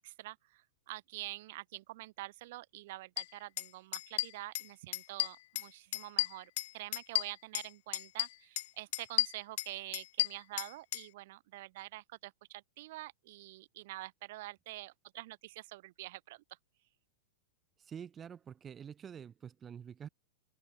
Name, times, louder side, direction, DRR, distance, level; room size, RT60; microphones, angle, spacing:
voice 1, 0.0-16.6, right 18 dB, 60° right, 3.5 m, -47 dB
sound 1, 3.2-3.3 3.6-3.7 3.9-4.7 4.9-5.7 5.9-7.7 7.9-8.7 8.9-11.0, left 18 dB, 60° left, 1.2 m, -33 dB
voice 2, 17.8-20.1, right 8 dB, 25° right, 3.6 m, -47 dB
open air
hypercardioid pair, 110°, 0 cm